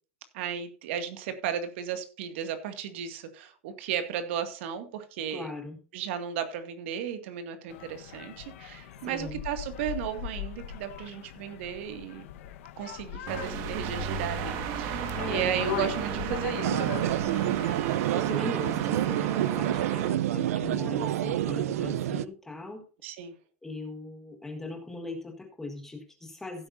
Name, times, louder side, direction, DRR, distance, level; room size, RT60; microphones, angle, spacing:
voice 1, 0.3-5.5 5.9-12.3 12.8-16.9 23.0-23.4, right 8 dB, 55° right, 8 dB, 2.1 m, -34 dB
voice 2, 5.3-5.8 9.0-9.4 15.2-15.6 18.1-22.8 23.6-26.7, left 2 dB, 5° left, 3 dB, 1.6 m, -39 dB
sound 1, 7.7-17.8, left 12 dB, 65° left, 1.2 m, -39 dB
sound 2, 13.3-20.1, right 9 dB, 40° right, 1.7 m, -33 dB
sound 3, 16.6-22.2, right 13 dB, 85° right, 0.7 m, -28 dB
16.0 x 8.7 x 2.7 m, 0.36 s
supercardioid pair, 175°, 8 cm